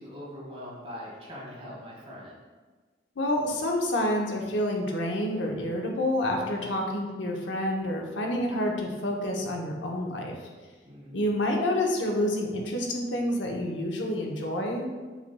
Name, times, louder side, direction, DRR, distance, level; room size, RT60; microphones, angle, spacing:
voice 1, 0.0-2.4 6.4-6.8 10.8-11.2, left 1 dB, 35° right, -5 dB, 1.4 m, -42 dB
voice 2, 3.2-10.3 11.1-14.9, left 1 dB, 80° left, 0 dB, 0.8 m, -28 dB
5.9 x 4.1 x 2.2 m, 1.4 s
head